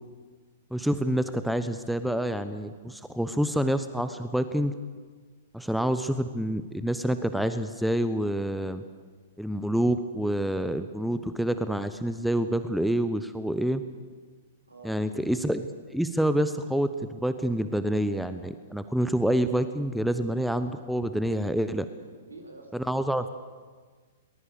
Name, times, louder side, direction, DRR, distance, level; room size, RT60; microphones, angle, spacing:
voice 1, 0.7-4.7 5.5-8.8 9.4-13.8 14.8-21.9 22.7-23.2, right 1 dB, ahead, 11 dB, 0.8 m, -27 dB
voice 2, 14.7-15.0 22.0-23.3, right 2 dB, 75° right, 4 dB, 4.8 m, -49 dB
22.5 x 19.5 x 6.8 m, 1.5 s
figure-of-eight pair, 110°, 0 cm